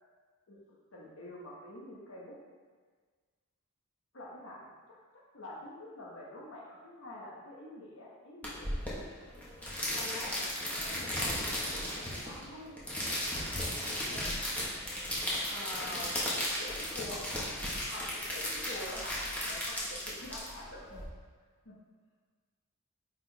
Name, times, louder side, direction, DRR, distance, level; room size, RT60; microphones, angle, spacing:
voice 1, 0.9-2.3 4.1-5.0 5.3-9.0 9.6-12.8 14.1-14.4 15.5-16.1 16.6-17.3 17.9-21.0 21.6-21.7, left 1 dB, 75° left, -4 dB, 1.4 m, -46 dB
sound 1, 8.4-21.0, left 1 dB, 5° left, 1.4 m, -35 dB
8.9 x 4.3 x 3.4 m, 1.5 s
head